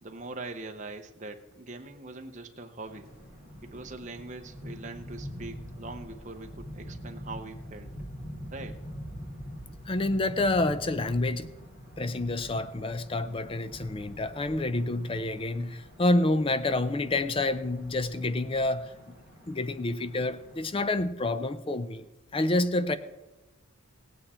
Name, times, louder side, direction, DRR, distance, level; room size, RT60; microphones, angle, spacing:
voice 1, 0.0-3.1 3.6-7.9 8.5-8.8, right 2 dB, 35° right, 5 dB, 0.8 m, -42 dB
sound 1, 2.9-20.7, equal, 40° left, 2.4 m, -44 dB
voice 2, 9.9-11.5 12.0-18.9 19.5-22.1 22.3-23.0, left 2 dB, 25° left, 13 dB, 0.4 m, -28 dB
17.0 x 8.9 x 4.3 m, 1.0 s
head